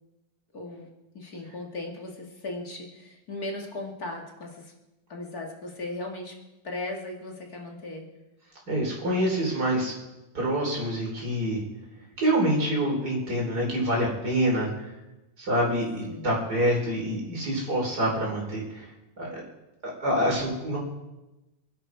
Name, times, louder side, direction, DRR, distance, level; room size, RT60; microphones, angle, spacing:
voice 1, 0.5-0.9 1.1-4.7 5.1-6.3 6.6-8.1 16.1-16.3, left 2 dB, 30° left, 1 dB, 2.3 m, -37 dB
voice 2, 8.7-9.9 10.3-11.6 12.2-14.7 15.4-18.9 19.2-19.4 19.8-20.8, right 1 dB, 30° right, -2 dB, 4.4 m, -26 dB
27.5 x 11.0 x 4.8 m, 1.0 s
omnidirectional pair, 3.8 m